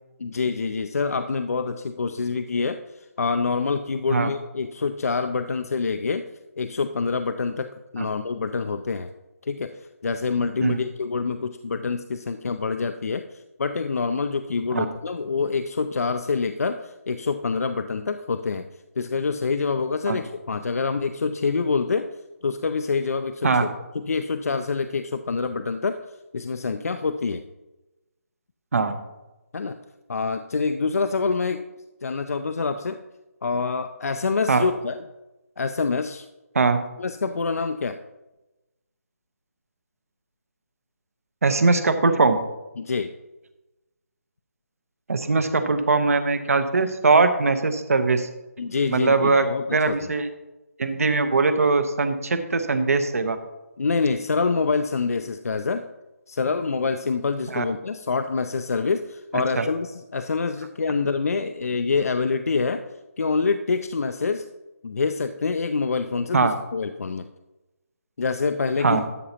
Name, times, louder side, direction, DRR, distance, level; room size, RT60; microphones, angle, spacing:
voice 1, 0.2-2.8 3.2-6.2 6.6-9.1 9.4-9.7 10.0-18.7 19.0-22.1 22.4-23.7 23.9-26.0 26.3-27.4 29.5-29.8 30.1-31.6 32.0-33.0 33.4-35.0 35.6-36.3 37.0-38.0 42.8-43.1 48.6-50.0 53.8-55.8 56.3-62.8 63.2-64.4 64.8-67.3 68.2-69.0, left 4 dB, 70° left, 8 dB, 0.5 m, -26 dB
voice 2, 41.4-42.4 45.1-48.3 48.9-50.3 50.8-53.4 57.5-57.6 59.3-59.7 66.3-66.5 68.8-69.0, right 3 dB, 65° right, 10 dB, 1.0 m, -21 dB
12.5 x 6.7 x 2.9 m, 1.0 s
figure-of-eight pair, 155°, 8 cm